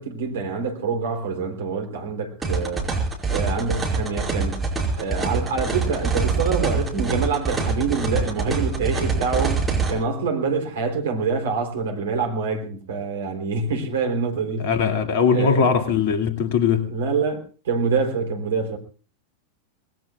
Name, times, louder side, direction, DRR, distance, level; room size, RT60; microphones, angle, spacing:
voice 1, 0.0-2.9 3.3-4.6 5.0-14.7 15.3-15.7 16.9-18.8, right 4 dB, 60° right, 3.5 m, -26 dB
sound 1, 2.4-9.9, right 4 dB, 10° right, 5.5 m, -25 dB
voice 2, 14.6-16.9, left 6 dB, 50° left, 2.4 m, -20 dB
26.0 x 19.5 x 2.4 m
figure-of-eight pair, 90°, 0 cm